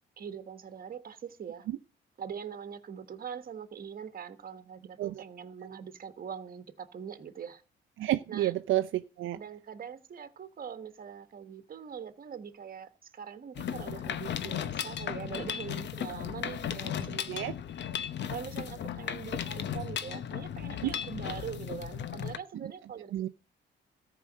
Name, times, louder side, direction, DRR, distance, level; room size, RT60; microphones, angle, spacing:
voice 1, 0.2-1.7 2.2-7.6 8.3-8.5 9.3-17.4 18.3-23.3, right 7 dB, 45° right, 1.4 m, -42 dB
voice 2, 8.0-9.4 17.3-17.5 20.8-20.9 22.6-22.7 23.1-23.3, right 14 dB, 80° right, 0.5 m, -30 dB
Mechanisms, 13.6-22.4, left 9 dB, 60° left, 0.8 m, -36 dB
14.0 x 5.0 x 7.4 m
cardioid pair, 100°, 20 cm